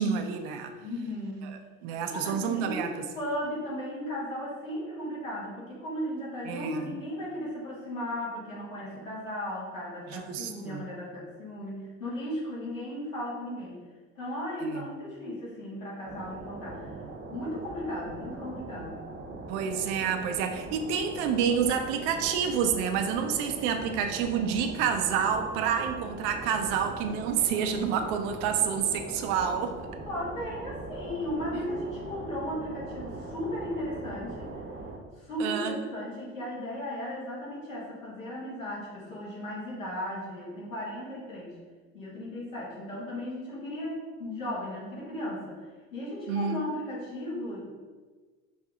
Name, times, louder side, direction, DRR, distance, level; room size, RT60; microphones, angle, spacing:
voice 1, 0.0-0.7 1.4-3.1 6.5-6.8 10.1-10.8 14.7-14.8 19.5-29.8 35.4-35.8 46.3-46.6, right 7 dB, 60° right, 6 dB, 0.6 m, -28 dB
voice 2, 0.8-1.6 2.0-13.8 14.1-16.9 17.3-19.0 30.1-34.5 35.2-41.5 41.9-45.5 45.9-47.7, left 1 dB, 85° left, -5 dB, 1.5 m, -36 dB
sound 1, 16.0-35.0, right 3 dB, 30° right, 0.8 m, -41 dB
5.2 x 2.7 x 3.6 m, 1.4 s
hypercardioid pair, 65°, 38 cm